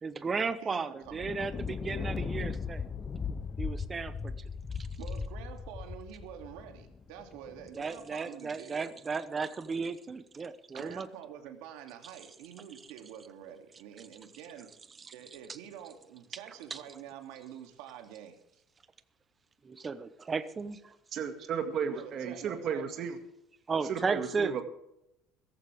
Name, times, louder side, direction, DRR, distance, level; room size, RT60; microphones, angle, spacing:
voice 1, 0.0-2.9 3.6-4.3 4.8-4.9 7.7-11.1 15.0-15.1 16.7-16.8 19.8-21.0 23.7-24.6, right 4 dB, 20° right, 13 dB, 0.8 m, -34 dB
voice 2, 0.6-1.5 5.0-8.9 10.7-14.7 15.1-18.6 21.7-23.1, right 9 dB, 80° right, 5 dB, 2.6 m, -47 dB
Thunder, 1.1-7.7, left 5 dB, 20° left, 0.5 m, -38 dB
voice 3, 21.1-23.2 23.9-24.6, right 7 dB, 35° right, 6 dB, 2.0 m, -34 dB
16.5 x 14.5 x 3.5 m, 0.81 s
cardioid pair, 175°, 0 cm